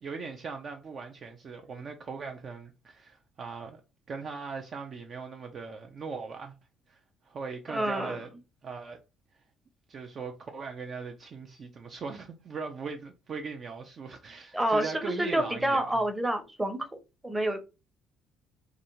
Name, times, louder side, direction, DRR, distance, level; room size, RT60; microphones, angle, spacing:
voice 1, 0.0-3.8 4.1-6.5 6.9-7.0 7.3-8.3 8.6-9.0 9.9-16.0, right 5 dB, 45° right, 0.4 m, -39 dB
voice 2, 7.7-8.2 14.5-16.9 17.2-17.6, right 1 dB, 15° right, 0.7 m, -28 dB
2.4 x 2.3 x 2.9 m
figure-of-eight pair, 50°, 0 cm